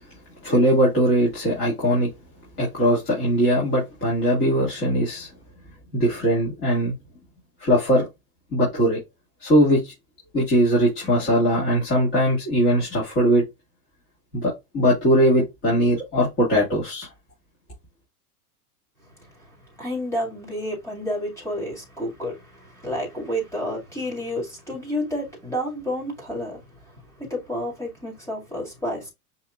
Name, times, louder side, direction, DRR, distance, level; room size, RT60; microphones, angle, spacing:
voice 1, 0.4-2.1 2.6-5.3 5.9-6.9 7.6-8.1 8.5-9.0 9.4-9.9 10.3-13.4 14.3-17.1, equal, 25° left, 2.2 m, -20 dB
voice 2, 19.8-29.1, equal, 5° left, 2.1 m, -30 dB
5.5 x 2.9 x 2.4 m
supercardioid pair, 150°, 46 cm